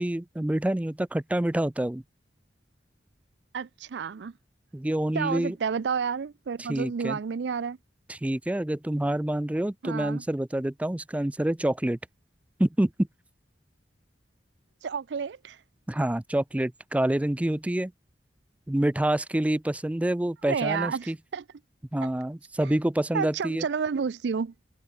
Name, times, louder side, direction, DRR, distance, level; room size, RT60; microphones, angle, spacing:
voice 1, 0.0-2.0 4.7-5.6 6.6-7.2 8.1-12.0 12.6-13.1 15.9-17.9 18.7-21.2 21.9-23.6, right 1 dB, 10° right, 0.4 m, -27 dB
voice 2, 3.5-4.3 5.1-7.8 9.8-10.2 14.8-15.6 20.5-21.4 23.1-24.5, right 6 dB, 70° right, 0.4 m, -30 dB
head